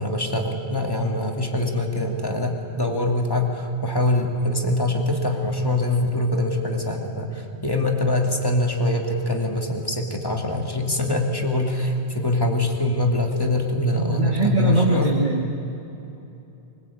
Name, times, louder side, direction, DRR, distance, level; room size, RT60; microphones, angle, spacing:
voice 1, 0.0-15.1, left 1 dB, 20° left, 2 dB, 2.6 m, -23 dB
voice 2, 13.9-15.6, right 3 dB, 45° right, -2 dB, 2.0 m, -22 dB
24.5 x 21.5 x 8.8 m, 3.0 s
omnidirectional pair, 1.2 m